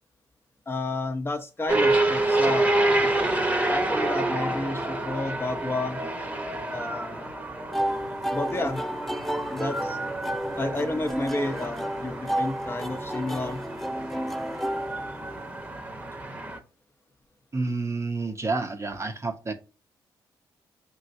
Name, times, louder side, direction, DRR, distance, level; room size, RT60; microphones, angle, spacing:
voice 1, 0.7-2.7 3.0-3.3 3.7-6.0 6.7-7.3 8.3-8.8 9.5-10.0 10.6-13.6, left 2 dB, 25° left, 0.8 m, -31 dB
sound 1, 1.7-16.6, right 2 dB, 15° right, 1.0 m, -28 dB
sound 2, 7.7-15.7, equal, ahead, 0.5 m, -32 dB
voice 2, 17.5-19.5, right 3 dB, 30° right, 0.7 m, -29 dB
5.3 x 3.1 x 2.6 m
supercardioid pair, 50°, 10 cm